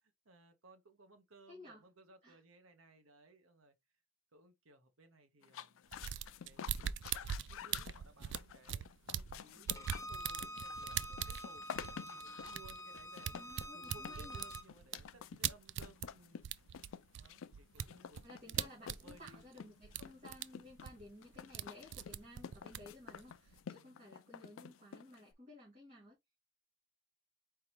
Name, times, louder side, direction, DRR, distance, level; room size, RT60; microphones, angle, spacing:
voice 1, 0.0-3.7 4.3-5.9 6.5-8.9 9.1-13.4 13.7-16.4 16.7-16.9 17.1-18.2 18.5-19.4 23.7-24.1, right 2 dB, 85° right, 1.1 m, -62 dB
voice 2, 1.5-1.9 2.2-2.4 9.4-9.7 13.3-14.4 18.2-26.2, left 1 dB, 35° right, 2.4 m, -56 dB
sound 1, 5.4-25.3, left 8 dB, 80° left, 0.4 m, -50 dB
sound 2, 5.9-9.4 9.7-16.1 16.4-19.6 19.8-20.4 20.7-21.7 21.9-23.6, right 10 dB, 55° right, 0.3 m, -41 dB
Bowed string instrument, 9.7-14.6, equal, 15° left, 0.5 m, -47 dB
4.5 x 3.6 x 3.0 m
head